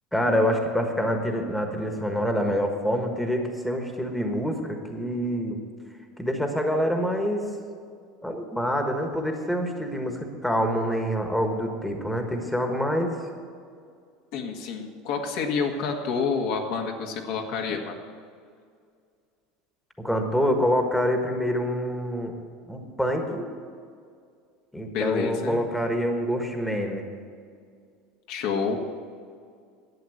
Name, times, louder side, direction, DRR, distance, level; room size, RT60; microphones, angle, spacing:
voice 1, 0.1-5.6 6.2-7.5 8.2-13.1 20.0-22.3 22.7-23.5 24.7-27.1, equal, 5° left, 3 dB, 1.4 m, -26 dB
voice 2, 14.3-18.0 24.9-25.6 28.3-28.8, left 5 dB, 65° left, 2 dB, 1.7 m, -28 dB
11.5 x 8.2 x 7.8 m, 2.2 s
supercardioid pair, 135°, 0 cm